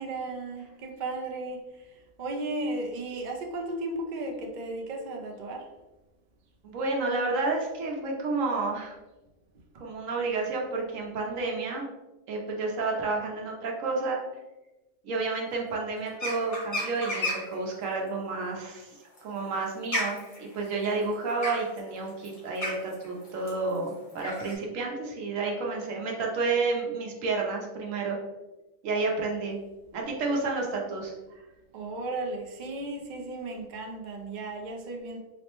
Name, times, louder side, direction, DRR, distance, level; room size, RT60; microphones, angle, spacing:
voice 1, 0.0-1.6 2.2-5.7 31.7-35.2, right 2 dB, 55° right, 1 dB, 0.5 m, -35 dB
voice 2, 6.6-8.9 9.7-11.8 12.3-14.2 15.0-18.9 19.2-28.2 28.8-29.6 29.9-31.1, right 3 dB, 80° right, 0 dB, 1.1 m, -30 dB
sound 1, 16.1-17.6 18.9-24.5, left 1 dB, 30° left, 0.8 m, -33 dB
3.9 x 2.1 x 2.9 m, 1.1 s
omnidirectional pair, 1.3 m